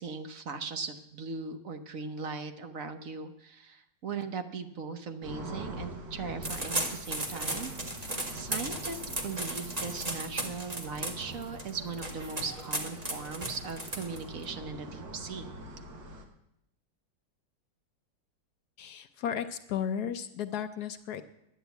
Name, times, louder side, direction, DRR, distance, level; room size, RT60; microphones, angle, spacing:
voice 1, 0.0-7.7 8.0-15.5, right 5 dB, 55° right, 8 dB, 1.2 m, -39 dB
sound 1, 5.2-16.2, right 1 dB, 70° right, 2.3 m, -44 dB
sound 2, 6.4-14.4, right 1 dB, 20° right, 1.7 m, -36 dB
voice 2, 18.8-21.2, left 8 dB, 65° left, 10 dB, 1.1 m, -34 dB
10.0 x 10.0 x 8.1 m, 0.81 s
omnidirectional pair, 2.0 m